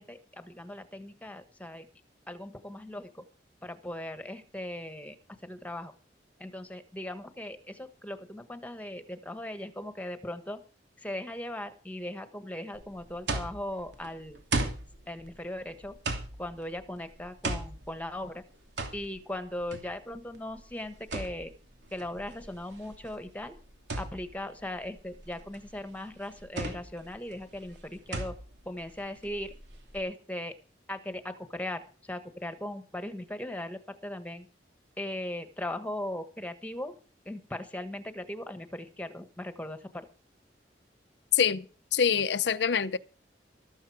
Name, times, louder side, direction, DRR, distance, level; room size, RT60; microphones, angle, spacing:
voice 1, 0.0-1.9 2.3-3.2 3.6-5.9 6.4-10.6 11.0-14.7 15.1-16.0 16.4-18.4 18.9-21.5 21.9-23.5 24.0-28.3 28.6-29.5 29.9-30.5 30.9-34.5 35.0-36.9 37.2-40.0, left 1 dB, 10° left, 1.4 m, -38 dB
sound 1, 12.7-30.0, right 2 dB, 90° right, 2.9 m, -38 dB
voice 2, 41.3-41.7 41.9-43.0, left 7 dB, 80° left, 0.6 m, -25 dB
14.0 x 13.5 x 4.8 m
head